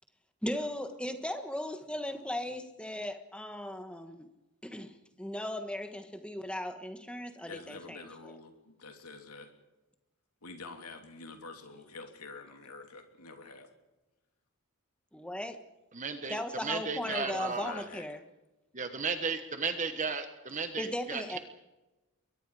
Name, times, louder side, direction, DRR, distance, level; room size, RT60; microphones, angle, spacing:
voice 1, 0.4-4.3 4.6-8.1 15.1-15.6 16.3-18.2 20.8-21.4, left 1 dB, 5° left, 7 dB, 1.5 m, -37 dB
voice 2, 7.5-9.5 10.4-13.7 17.0-18.2, left 3 dB, 90° left, 4 dB, 3.2 m, -47 dB
voice 3, 15.9-17.8 18.7-21.4, right 4 dB, 35° right, 7 dB, 1.3 m, -35 dB
28.0 x 22.5 x 5.0 m, 1.1 s
head